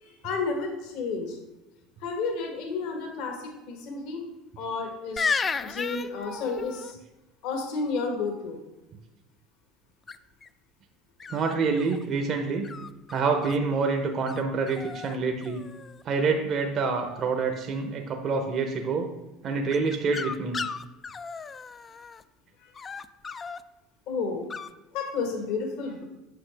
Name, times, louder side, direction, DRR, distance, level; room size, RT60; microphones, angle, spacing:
voice 1, 0.0-1.4 2.0-4.2 4.6-5.3 5.6-7.0 7.4-8.6 22.6-22.7 24.1-24.4 24.9-26.0, left 4 dB, 70° left, 2 dB, 1.5 m, -31 dB
sound 1, 5.2-6.9 10.1-10.5 11.2-12.1 12.6-13.6 14.3-14.4 14.7-15.2 15.4-16.0 19.7-22.2 22.7-23.6 24.5-24.7, left 5 dB, 30° left, 0.3 m, -34 dB
voice 2, 11.3-12.7 13.1-15.6 16.0-19.1 19.4-20.6, right 4 dB, 50° right, 3 dB, 0.8 m, -27 dB
7.8 x 5.5 x 3.4 m, 1.0 s
hypercardioid pair, 80°, 0 cm